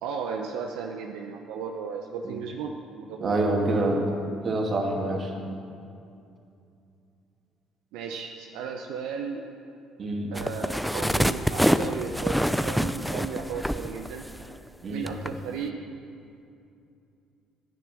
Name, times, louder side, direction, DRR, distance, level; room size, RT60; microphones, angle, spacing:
voice 1, 0.0-3.9 7.9-9.4 10.3-14.2 14.9-15.7, right 6 dB, 80° right, 2 dB, 0.7 m, -35 dB
voice 2, 3.2-4.0 4.4-5.3 10.0-10.3 14.8-15.1, right 2 dB, 45° right, 0 dB, 2.3 m, -26 dB
sound 1, 10.3-14.7 15.1-15.3, equal, ahead, 0.5 m, -26 dB
10.5 x 9.1 x 6.9 m, 2.6 s
supercardioid pair, 65°, 0 cm